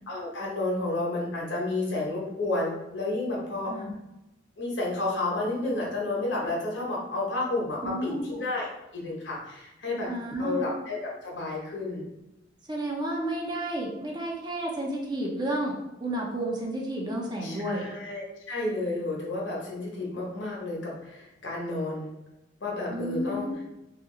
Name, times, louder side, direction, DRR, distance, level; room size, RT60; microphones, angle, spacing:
voice 1, 0.1-3.7 4.6-10.1 10.4-12.0 17.4-22.1 22.6-23.5, left 2 dB, 70° left, -3 dB, 0.9 m, -31 dB
voice 2, 7.8-8.4 10.1-10.7 12.7-15.7 16.0-17.9 22.9-23.6, right 1 dB, 25° right, -1 dB, 0.5 m, -31 dB
2.8 x 2.3 x 3.6 m, 0.95 s
head